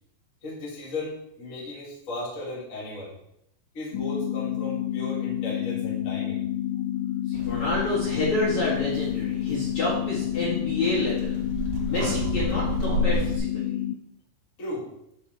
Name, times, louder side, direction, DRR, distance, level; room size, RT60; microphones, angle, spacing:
voice 1, 0.4-3.2 3.7-6.4 14.6-14.9, left 1 dB, 25° left, -6 dB, 1.7 m, -36 dB
sound 1, 3.9-13.9, left 12 dB, 85° left, 3.2 m, -29 dB
voice 2, 7.3-11.4 11.9-13.7, left 2 dB, 50° left, -7 dB, 2.3 m, -28 dB
sound 2, 7.3-13.4, right 1 dB, 85° right, 3.7 m, -32 dB
13.0 x 4.4 x 4.4 m, 0.78 s
omnidirectional pair, 6.0 m